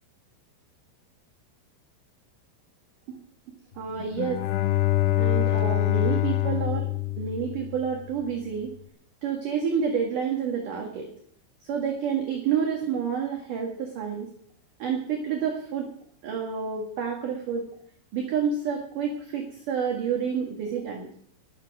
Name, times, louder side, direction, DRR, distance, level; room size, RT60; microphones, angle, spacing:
voice 1, 3.8-4.4 5.2-6.9 7.2-8.7 9.2-11.1 11.6-14.3 14.8-15.9 16.2-17.7 18.1-21.1, right 7 dB, 55° right, 1 dB, 2.6 m, -29 dB
Bowed string instrument, 4.0-8.1, left 16 dB, 80° left, 2.4 m, -25 dB
21.5 x 7.4 x 6.0 m, 0.64 s
omnidirectional pair, 5.8 m